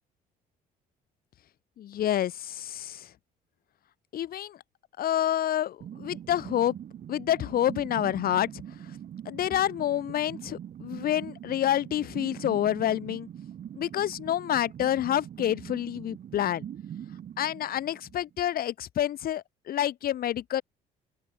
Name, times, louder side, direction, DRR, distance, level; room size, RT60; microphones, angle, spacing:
voice 1, 1.8-3.1 4.1-4.6 5.0-6.8 7.1-8.5 9.3-13.3 13.7-16.6 17.4-20.6, left 11 dB, 60° left, 5.4 m, -28 dB
sound 1, 5.8-18.5, right 10 dB, 55° right, 7.2 m, -42 dB
open air
cardioid pair, 110°, 17 cm